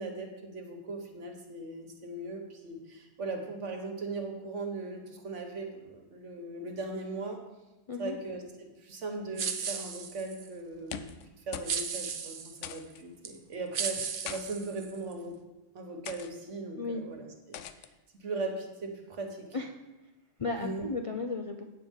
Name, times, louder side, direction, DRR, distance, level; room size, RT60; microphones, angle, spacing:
voice 1, 0.0-7.4 8.0-11.0 11.5-15.4 15.7-17.6 18.2-19.5 20.5-20.9, right 2 dB, 75° right, 3 dB, 1.5 m, -39 dB
sound 1, 9.4-10.5 11.7-12.6 13.2-13.4 13.7-15.1, right 6 dB, 55° right, 0.7 m, -35 dB
sound 2, 10.7-11.3 11.5-11.8 12.1-12.2 12.6-13.0 13.9-14.4 15.2-15.4 16.0-16.3 17.5-17.9, left 9 dB, 80° left, 0.9 m, -42 dB
voice 2, 20.4-21.6, left 3 dB, 45° left, 3 dB, 0.4 m, -34 dB
8.6 x 4.7 x 7.2 m, 1.1 s
omnidirectional pair, 1.3 m